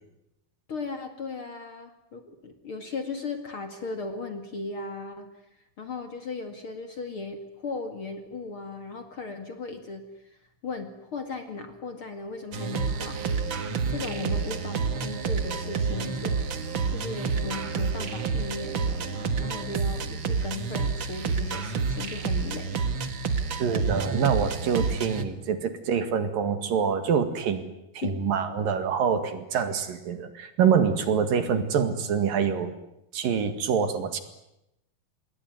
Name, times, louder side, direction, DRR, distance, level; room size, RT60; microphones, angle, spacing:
voice 1, 0.7-5.3 5.8-10.4 10.6-13.2 13.9-16.4 16.9-22.8 24.7-24.9 28.0-28.2 31.6-31.7, left 4 dB, 40° left, 7 dB, 2.5 m, -37 dB
sound 1, 12.5-25.2, right 5 dB, 50° right, 1.5 m, -29 dB
voice 2, 23.6-27.7 28.0-32.7 33.1-34.2, right 7 dB, 65° right, 10 dB, 3.6 m, -25 dB
27.0 x 21.5 x 9.4 m, 0.86 s
omnidirectional pair, 4.4 m